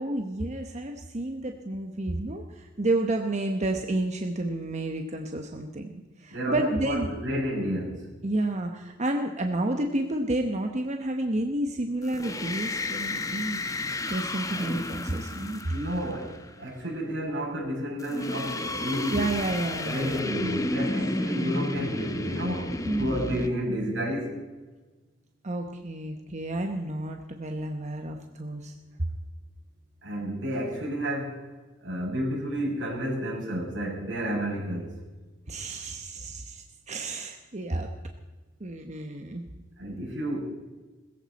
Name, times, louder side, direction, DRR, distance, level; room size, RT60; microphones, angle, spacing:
voice 1, 0.0-5.9 6.2-7.1 8.2-13.6 14.1-15.7 19.1-20.2 22.9-23.1 25.4-28.7 29.0-29.1 35.5-37.9 38.6-39.5, right 1 dB, 40° right, 4 dB, 1.1 m, -30 dB
voice 2, 6.3-8.0 15.7-19.3 19.8-24.3 30.0-31.4 31.8-34.9 39.8-40.4, equal, 85° right, -3 dB, 6.4 m, -31 dB
sound 1, 12.0-16.5 18.0-23.5, left 2 dB, 20° left, 0.9 m, -32 dB
20.5 x 15.0 x 4.2 m, 1.2 s
head